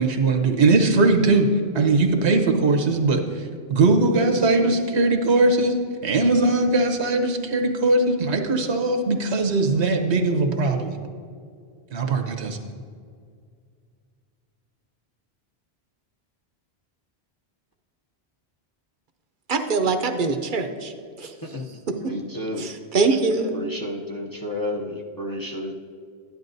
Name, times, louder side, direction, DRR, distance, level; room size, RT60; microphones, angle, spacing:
voice 1, 0.0-1.5 1.7-5.8 6.0-11.0 11.9-12.6, right 3 dB, 80° right, 5 dB, 1.2 m, -20 dB
voice 2, 19.5-20.9 21.2-21.3 21.9-22.0 22.6-23.5, right 4 dB, 55° right, 7 dB, 0.8 m, -23 dB
voice 3, 21.2-21.6 22.0-22.6 23.5-25.7, left 1 dB, 25° left, -1 dB, 0.6 m, -31 dB
13.0 x 10.5 x 2.6 m, 2.2 s
omnidirectional pair, 1.1 m